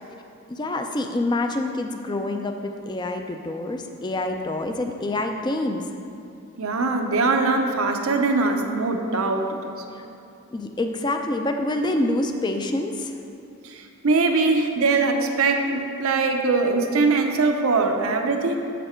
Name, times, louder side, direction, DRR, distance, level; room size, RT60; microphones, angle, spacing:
voice 1, 0.5-5.8 9.9-10.0 10.5-13.1, left 2 dB, 20° left, 5 dB, 0.4 m, -26 dB
voice 2, 6.6-9.8 13.6-18.6, right 3 dB, 75° right, 3 dB, 0.7 m, -22 dB
7.5 x 6.8 x 4.4 m, 2.6 s
head